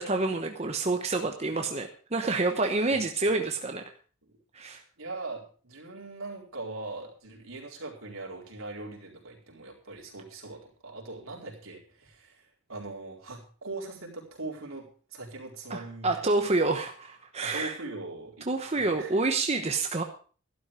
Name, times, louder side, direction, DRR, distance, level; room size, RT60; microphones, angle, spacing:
voice 1, 0.0-3.8 4.5-4.8 15.7-17.8 18.5-20.0, right 3 dB, 30° right, 4 dB, 1.0 m, -28 dB
voice 2, 5.0-16.2 17.4-19.2, right 2 dB, 75° right, -1 dB, 4.3 m, -41 dB
12.5 x 12.0 x 5.0 m, 0.41 s
head